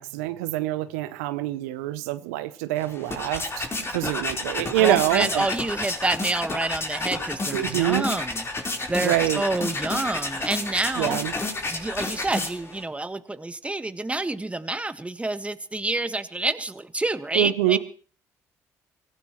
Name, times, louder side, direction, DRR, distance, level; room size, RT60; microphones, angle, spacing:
voice 1, 0.0-3.7 3.9-5.5 7.5-8.1 9.0-9.4 11.0-11.3 17.3-17.8, right 15 dB, 90° right, 12 dB, 0.7 m, -25 dB
sound 1, 2.8-12.8, left 2 dB, 35° left, 4.1 m, -30 dB
voice 2, 4.8-8.5 8.9-11.1 11.7-17.8, right 2 dB, 15° right, 10 dB, 1.5 m, -28 dB
25.0 x 15.5 x 3.1 m, 0.39 s
hypercardioid pair, 55°, 8 cm